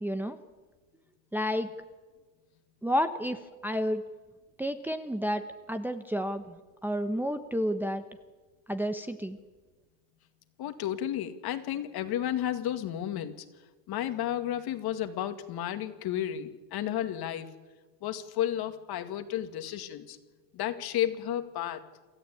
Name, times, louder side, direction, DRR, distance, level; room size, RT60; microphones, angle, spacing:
voice 1, 0.0-0.4 1.3-1.7 2.8-4.0 4.6-5.4 5.7-8.0 8.7-9.4, equal, 5° right, 7 dB, 1.0 m, -30 dB
voice 2, 10.6-13.4 13.9-17.5 18.0-20.2 20.5-21.8, left 11 dB, 50° left, 8 dB, 2.2 m, -32 dB
27.0 x 14.0 x 8.6 m, 1.3 s
supercardioid pair, 115°, 48 cm